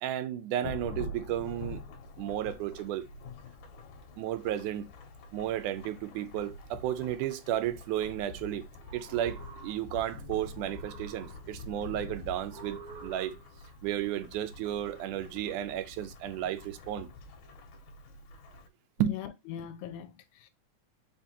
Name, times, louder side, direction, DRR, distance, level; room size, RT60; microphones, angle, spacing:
voice 1, 0.0-1.8 2.2-3.1 4.2-4.9 5.3-8.7 8.9-13.4 13.8-17.1 19.0-19.1, right 11 dB, 90° right, 2.1 m, -33 dB
Thunderstorm / Rain, 0.6-18.7, left 2 dB, 70° left, 2.1 m, -46 dB
sound 1, 8.7-10.1 10.5-11.7 12.4-13.7, right 4 dB, 55° right, 1.3 m, -50 dB
voice 2, 19.0-20.5, left 10 dB, 90° left, 2.1 m, -41 dB
5.0 x 3.5 x 2.8 m
omnidirectional pair, 3.5 m